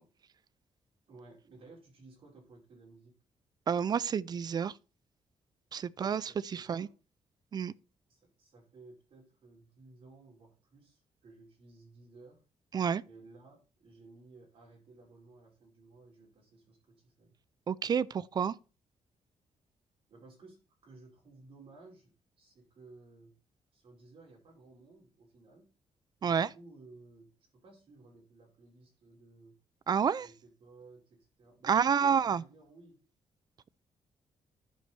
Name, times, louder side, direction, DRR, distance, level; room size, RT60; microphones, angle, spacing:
voice 1, 1.1-3.2 6.2-6.9 8.1-12.5 13.0-17.3 20.1-23.3 23.7-25.7 26.2-29.5 30.2-33.0, right 3 dB, 55° right, 5.2 m, -56 dB
voice 2, 3.7-4.7 5.7-6.9 7.5-7.7 12.7-13.0 17.7-18.5 26.2-26.5 29.9-30.3 31.7-32.4, right 7 dB, 35° right, 0.4 m, -29 dB
11.0 x 5.5 x 4.6 m
cardioid pair, 150°, 12 cm